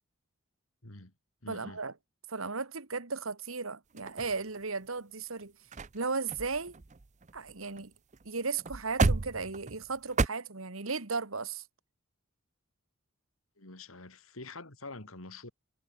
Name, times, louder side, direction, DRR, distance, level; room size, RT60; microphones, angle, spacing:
voice 1, 0.8-1.1 1.4-1.8 13.6-15.5, left 2 dB, 85° left, 3.8 m, -46 dB
voice 2, 1.5-1.9 2.3-5.5 5.9-6.8 7.3-7.9 8.3-11.6, right 4 dB, 75° right, 2.0 m, -35 dB
sound 1, 4.0-4.8 5.4-5.5 5.7-6.0 6.3-7.9 8.1-8.3 8.6-10.3, right 3 dB, 35° right, 0.6 m, -32 dB
head